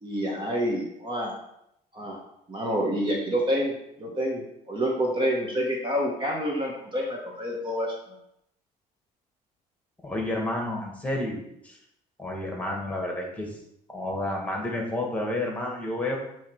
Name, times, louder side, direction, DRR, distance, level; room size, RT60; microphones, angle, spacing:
voice 1, 0.0-1.3 1.9-2.2 2.5-8.0, equal, 30° right, -1 dB, 1.3 m, -28 dB
voice 2, 10.0-11.8 12.2-13.6 13.9-16.2, left 1 dB, 10° left, -1 dB, 1.8 m, -30 dB
8.1 x 3.1 x 4.7 m, 0.78 s
cardioid pair, 110°, 17 cm